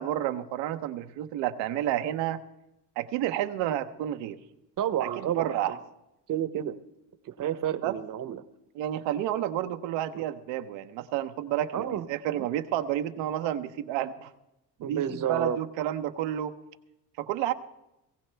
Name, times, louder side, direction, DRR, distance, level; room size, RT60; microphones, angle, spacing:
voice 1, 0.0-2.4 3.0-4.4 5.0-5.8 7.8-7.9 8.7-14.3 14.9-16.5 17.2-17.5, right 12 dB, 85° right, 8 dB, 1.0 m, -30 dB
voice 2, 4.8-5.8 6.3-6.8 7.2-8.4 10.1-10.2 11.7-12.1 12.4-12.5 14.8-15.6, right 10 dB, 50° right, 13 dB, 1.0 m, -30 dB
19.0 x 16.0 x 3.4 m, 0.91 s
cardioid pair, 95°, 43 cm